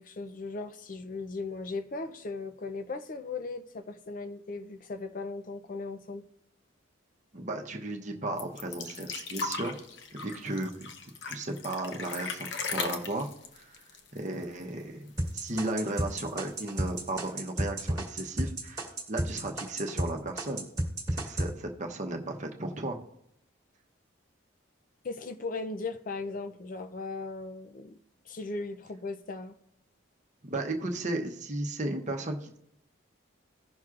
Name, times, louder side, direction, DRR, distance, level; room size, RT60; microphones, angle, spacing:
voice 1, 0.0-6.2 25.0-28.0 28.3-29.5, left 3 dB, 40° left, 0.4 m, -37 dB
voice 2, 7.3-9.7 10.1-10.9 11.3-13.3 13.5-13.8 14.1-20.7 21.1-23.0 30.4-32.6, right 2 dB, 35° right, 0.8 m, -35 dB
sound 1, 8.4-14.8 15.1-15.2 15.5-16.2 17.0-17.1, left 4 dB, 60° left, 0.8 m, -37 dB
sound 2, 15.2-20.1 20.4-21.5, right 1 dB, 15° right, 1.5 m, -31 dB
16.5 x 6.0 x 2.4 m
head